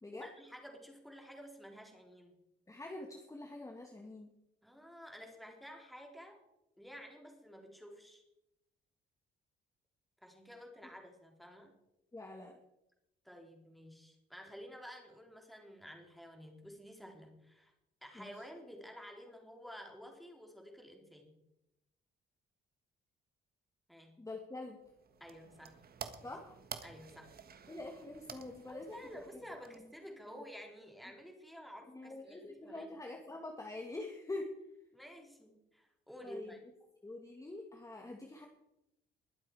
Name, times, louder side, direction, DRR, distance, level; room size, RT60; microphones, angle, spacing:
voice 1, 0.1-2.4 4.6-6.4 6.8-8.2 10.2-11.8 13.2-17.7 18.0-21.4 23.9-24.1 25.2-25.8 26.2-26.4 26.8-27.3 28.7-33.0 34.9-36.6, equal, ahead, 2 dB, 3.6 m, -52 dB
voice 2, 2.7-4.3 12.1-12.6 18.2-18.3 24.2-24.8 26.2-26.6 27.7-29.0 30.3-30.4 31.9-34.5 36.2-36.5 37.0-38.5, left 2 dB, 15° left, 2 dB, 1.9 m, -45 dB
sound 1, 24.8-30.2, right 7 dB, 50° right, 1.5 m, -51 dB
21.5 x 7.7 x 4.8 m, 0.87 s
cardioid pair, 90°, 20 cm